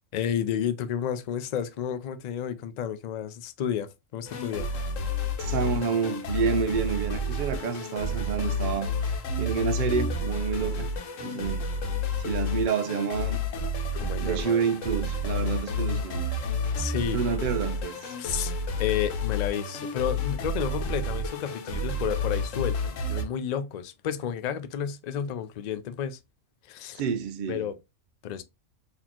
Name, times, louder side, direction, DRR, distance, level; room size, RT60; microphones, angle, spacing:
voice 1, 0.1-4.7 14.0-14.6 16.7-17.2 18.2-18.5 18.8-26.2 26.7-27.0 27.5-27.7 28.2-28.4, left 9 dB, 75° left, 0.4 m, -31 dB
sound 1, 4.3-23.2, left 2 dB, 90° left, 1.1 m, -30 dB
voice 2, 5.4-10.9 11.2-11.6 12.2-13.4 14.2-16.3 17.1-18.1 27.0-27.6, right 6 dB, 60° right, 0.5 m, -29 dB
4.1 x 2.9 x 2.8 m
omnidirectional pair, 1.3 m